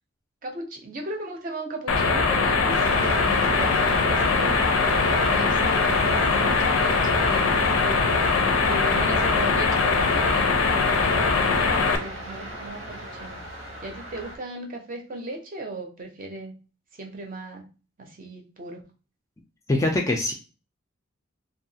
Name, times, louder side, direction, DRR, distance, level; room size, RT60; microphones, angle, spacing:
voice 1, 0.4-8.2 8.6-13.4 13.8-16.6 17.0-17.7 18.0-18.8, right 2 dB, 40° right, 3 dB, 0.6 m, -36 dB
sound 1, 1.9-12.0, left 4 dB, 90° left, 0.5 m, -21 dB
sound 2, 2.7-14.4, right 1 dB, 85° right, 1.0 m, -35 dB
voice 2, 19.7-20.3, left 2 dB, 15° left, 2 dB, 0.3 m, -23 dB
2.7 x 2.3 x 2.7 m, 0.33 s
head